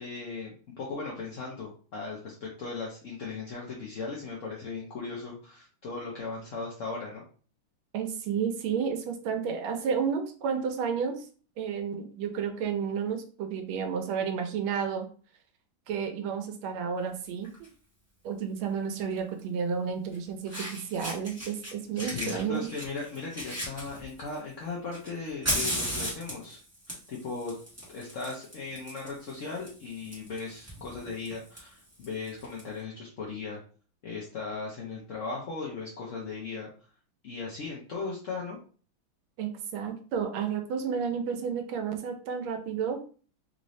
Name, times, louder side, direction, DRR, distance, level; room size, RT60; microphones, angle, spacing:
voice 1, 0.0-7.2 21.9-27.5 27.9-33.6 34.0-36.7 37.2-38.6, left 4 dB, 65° left, -3 dB, 0.7 m, -37 dB
voice 2, 7.9-11.3 11.6-15.1 15.9-17.5 18.2-22.7 39.4-43.0, right 7 dB, 85° right, 5 dB, 1.5 m, -31 dB
Fire, 17.4-17.7 19.1-19.2 20.1-20.2 20.5-21.7 22.0-24.4 24.9-32.6, equal, 10° right, 1.1 m, -36 dB
3.7 x 2.6 x 3.1 m, 0.41 s
omnidirectional pair, 2.2 m